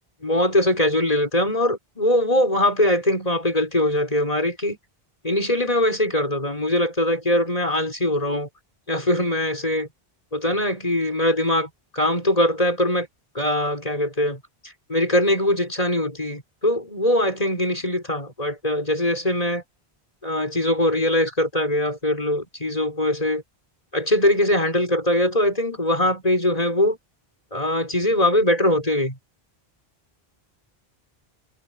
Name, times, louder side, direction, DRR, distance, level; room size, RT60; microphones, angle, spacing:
voice 1, 0.2-4.8 5.2-8.5 8.9-9.9 10.3-13.1 13.3-14.4 14.9-19.6 20.2-23.4 23.9-27.0 27.5-29.2, left 1 dB, 35° left, 5.9 m, -22 dB
omnidirectional pair, 1.0 m